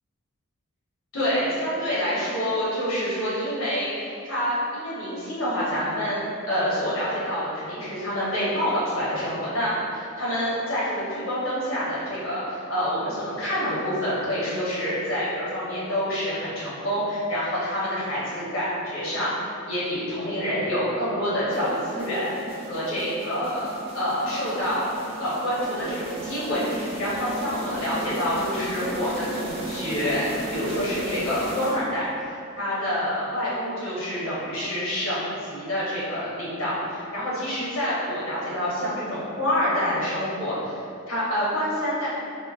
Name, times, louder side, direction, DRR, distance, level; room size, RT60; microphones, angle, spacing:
voice 1, 1.1-6.2 6.5-22.3 22.7-23.7 23.9-24.9 25.2-40.8 41.1-42.1, equal, 70° left, -9 dB, 1.0 m, -27 dB
sound 1, 21.5-32.2, right 1 dB, 30° right, 0.3 m, -35 dB
3.6 x 2.1 x 2.5 m, 2.5 s
head